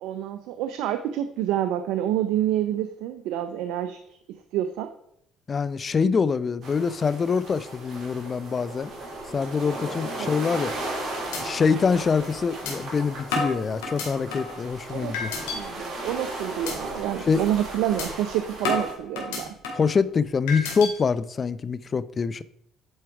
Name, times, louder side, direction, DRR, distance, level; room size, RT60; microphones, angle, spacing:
voice 1, 0.0-4.0 4.5-4.9 10.2-10.4 14.9-15.1 15.5-19.5, right 11 dB, 80° right, 0.5 m, -28 dB
voice 2, 5.5-8.9 9.3-10.7 11.4-15.3 17.3-17.4 19.7-22.4, left 5 dB, 40° left, 0.5 m, -25 dB
sound 1, 6.6-18.9, right 2 dB, 55° right, 3.8 m, -36 dB
sound 2, 10.7-11.0 11.3-11.4 11.8-11.9 12.7-12.8 13.3-14.6 15.1-15.6 16.0-16.2 16.7-16.8 17.2-17.4 18.0-18.1 18.6-19.9 20.5-20.9, left 3 dB, 85° left, 2.2 m, -30 dB
9.7 x 4.5 x 4.7 m
supercardioid pair, 75°, 0 cm